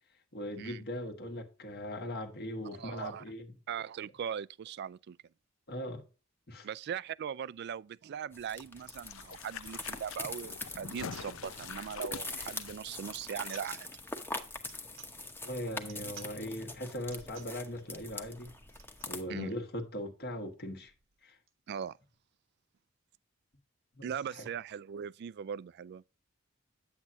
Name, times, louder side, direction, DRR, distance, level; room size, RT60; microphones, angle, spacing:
voice 1, 0.3-3.5 5.7-6.0 6.5-6.7 15.4-18.5 19.1-20.9 21.2-21.4 24.0-24.1 24.3-24.5, left 1 dB, 50° left, 1.4 m, -39 dB
voice 2, 2.8-3.2 3.7-5.2 6.6-13.9 19.3-19.5 21.7-22.0 24.0-26.0, right 8 dB, 55° right, 0.3 m, -40 dB
sound 1, 8.3-19.2, left 2 dB, 10° left, 0.9 m, -43 dB
sound 2, 8.8-13.6 13.9-14.0, left 6 dB, 75° left, 0.6 m, -46 dB
sound 3, 10.4-10.7 11.1-11.3 12.9-13.2 13.5-13.7 14.6-15.1 15.8-16.3 17.0-17.6 18.7-19.2 19.7-19.8 20.0-20.1 20.4-21.9, right 9 dB, 80° right, 1.2 m, -55 dB
8.7 x 8.1 x 2.6 m
head